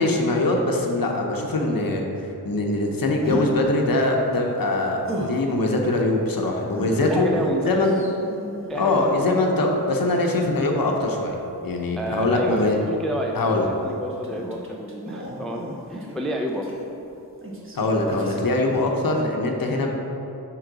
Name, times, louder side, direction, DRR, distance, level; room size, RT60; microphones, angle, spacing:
voice 1, 0.0-7.3 7.7-7.9 8.7-12.8 13.3-13.7 17.8-19.9, left 2 dB, 60° left, 1 dB, 0.8 m, -22 dB
sound 1, 3.2-3.5 5.0-5.4 6.7-9.8 10.8-11.6 12.5-12.7 13.5-17.1 17.4-17.8 18.1-18.4 18.7-18.9, right 1 dB, 30° right, 1.2 m, -36 dB
voice 2, 7.0-8.1 8.7-9.3 11.9-16.7, equal, ahead, 1 dB, 0.4 m, -30 dB
5.7 x 3.9 x 4.7 m, 2.9 s
cardioid pair, 55°, 40 cm